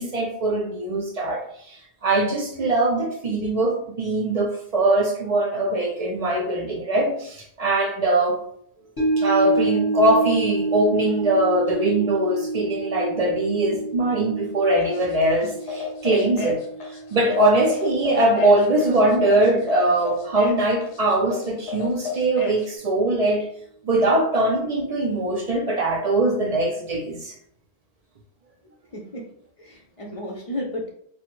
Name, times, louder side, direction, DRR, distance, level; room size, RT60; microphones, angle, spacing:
voice 1, 0.0-1.7 2.0-8.4 9.2-16.6 17.1-23.5 23.8-27.3, right 2 dB, 55° right, 0 dB, 0.4 m, -21 dB
sound 1, 9.0-19.3 19.7-19.8, right 3 dB, 25° left, 0.7 m, -29 dB
sound 2, 14.8-22.7, left 6 dB, 90° left, 0.9 m, -33 dB
voice 2, 28.9-29.2 29.6-30.9, left 1 dB, 50° left, 0 dB, 0.4 m, -32 dB
3.2 x 2.0 x 3.0 m, 0.66 s
omnidirectional pair, 1.1 m